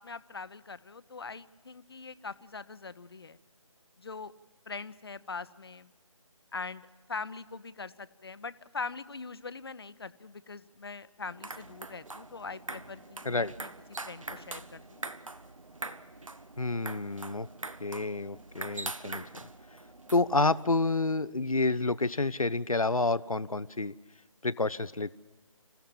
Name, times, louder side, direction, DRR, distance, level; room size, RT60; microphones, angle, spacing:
voice 1, 0.0-3.4 4.0-4.3 4.7-5.9 6.5-13.7 14.0-15.0, left 4 dB, 45° left, 15 dB, 0.7 m, -42 dB
sound 1, 11.2-20.7, right 2 dB, 70° right, 1.1 m, -43 dB
voice 2, 16.6-17.5 17.8-19.5 20.1-23.9 24.4-25.1, left 3 dB, 90° left, 17 dB, 0.7 m, -29 dB
27.0 x 15.0 x 7.4 m, 1.3 s
figure-of-eight pair, 155°, 17 cm